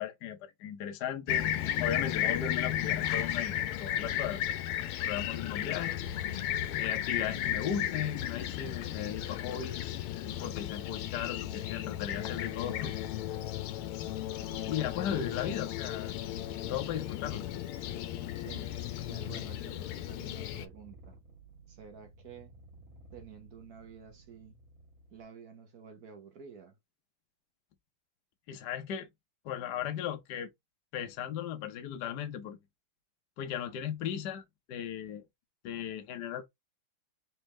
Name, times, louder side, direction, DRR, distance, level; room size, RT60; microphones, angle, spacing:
voice 1, 0.0-1.5 1.8-4.6 5.0-6.0 6.8-12.9 14.6-16.1 16.7-17.5 28.5-29.1 29.4-30.5 30.9-32.6 33.4-35.2 35.6-36.5, left 9 dB, 65° left, 1.1 m, -37 dB
Fixed-wing aircraft airplane, 1.3-20.7, left 12 dB, 85° left, 1.5 m, -34 dB
Purr, 5.9-25.2, right 2 dB, 40° right, 2.2 m, -54 dB
voice 2, 18.4-18.7 19.1-21.2 21.7-22.6 23.1-24.6 25.1-26.8, right 6 dB, 55° right, 1.1 m, -50 dB
4.2 x 3.4 x 3.2 m
omnidirectional pair, 2.4 m